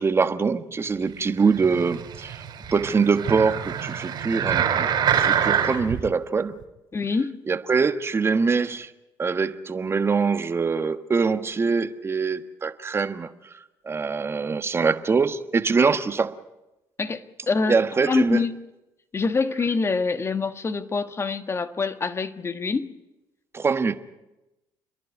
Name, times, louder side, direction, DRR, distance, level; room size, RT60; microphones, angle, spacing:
voice 1, 0.0-2.4 2.7-6.6 7.5-8.9 9.2-13.3 13.8-16.3 17.7-18.4 23.5-23.9, right 5 dB, 30° right, 1.4 m, -23 dB
sound 1, 1.4-6.0 6.6-6.7, right 8 dB, 55° right, 3.8 m, -25 dB
voice 2, 6.9-7.4 17.0-17.8 18.0-18.5 19.1-22.9, left 4 dB, 30° left, 1.6 m, -25 dB
29.0 x 11.0 x 9.7 m
supercardioid pair, 80°, 9 cm